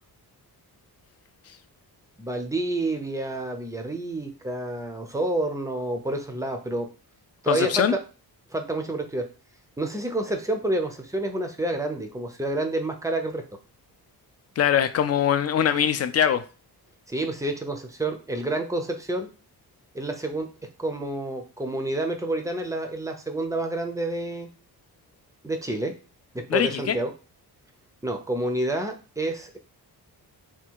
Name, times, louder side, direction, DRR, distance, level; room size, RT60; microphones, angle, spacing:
voice 1, 2.2-6.9 7.4-8.0 8.5-9.3 9.8-13.4 17.1-19.3 19.9-20.5 20.8-24.5 25.4-25.9 26.3-27.1 28.0-29.6, right 1 dB, 10° right, 0.5 m, -29 dB
voice 2, 7.5-7.9 14.6-16.4 26.5-27.0, left 9 dB, 40° left, 0.4 m, -22 dB
3.5 x 2.3 x 4.5 m
wide cardioid pair, 145°, 39 cm